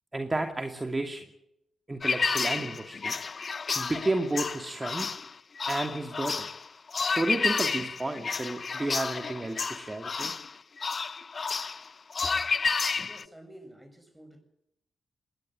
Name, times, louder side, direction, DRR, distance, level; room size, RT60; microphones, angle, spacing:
voice 1, 0.1-1.2 1.9-3.1 3.8-5.1 5.7-6.5 7.1-10.3, right 2 dB, 25° right, 5 dB, 2.5 m, -32 dB
sound 1, 2.0-13.2, left 4 dB, 50° left, 0.8 m, -31 dB
voice 2, 13.0-14.4, right 1 dB, 10° right, 8 dB, 7.1 m, -50 dB
21.5 x 16.0 x 7.7 m, 0.80 s
supercardioid pair, 45°, 0 cm